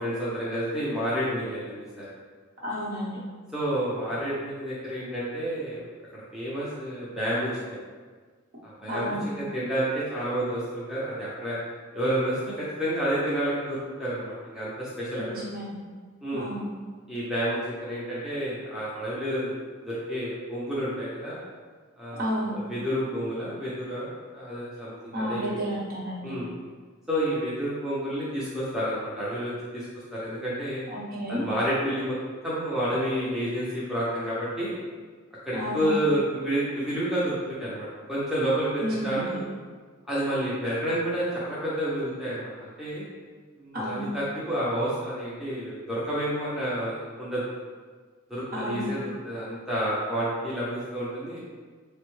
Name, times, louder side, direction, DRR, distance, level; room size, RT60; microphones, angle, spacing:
voice 1, 0.0-2.1 3.5-5.8 6.1-7.5 8.6-11.6 11.9-15.4 16.2-16.5 17.1-21.4 22.0-22.3 22.5-25.6 26.2-26.5 27.1-30.8 31.3-32.2 32.4-34.8 35.4-39.4 40.1-43.0 43.6-47.4 48.3-51.4, equal, ahead, -9 dB, 0.5 m, -30 dB
voice 2, 2.6-3.2 8.9-9.2 15.1-15.8 16.3-16.6 22.1-22.5 25.1-26.3 30.9-31.5 35.5-35.9 38.8-39.4 43.7-44.1 48.5-48.9, equal, 45° right, -6 dB, 0.9 m, -31 dB
3.7 x 2.1 x 3.0 m, 1.5 s
head